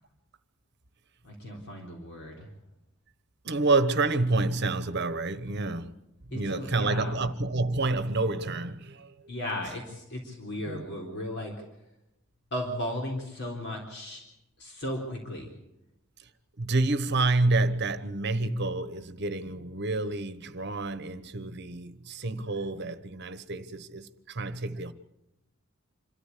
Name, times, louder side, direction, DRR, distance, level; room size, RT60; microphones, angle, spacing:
voice 1, 1.2-2.5 6.3-7.2 9.3-11.5 12.5-14.2 14.6-15.5, left 1 dB, 50° left, 3.8 m, -35 dB
voice 2, 3.4-5.9 6.3-9.1 10.6-10.9 16.6-24.9, right 2 dB, 50° right, 1.1 m, -28 dB
26.5 x 13.5 x 8.5 m
head